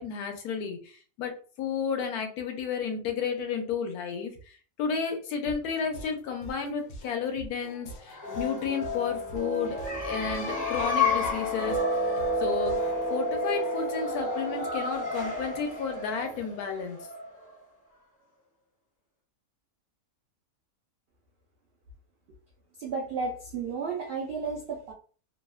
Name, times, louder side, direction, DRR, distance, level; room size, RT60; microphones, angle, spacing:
voice 1, 0.0-1.3 1.6-9.8 10.0-11.8 12.4-12.8 13.1-17.0, left 6 dB, 85° left, 5 dB, 1.1 m, -32 dB
sound 1, 5.5-13.0, right 1 dB, 65° left, 0.7 m, -45 dB
sound 2, 8.0-17.5, left 1 dB, 30° left, 0.3 m, -30 dB
voice 2, 22.8-24.9, right 4 dB, 85° right, -1 dB, 0.5 m, -33 dB
2.9 x 2.0 x 2.3 m, 0.40 s
omnidirectional pair, 1.6 m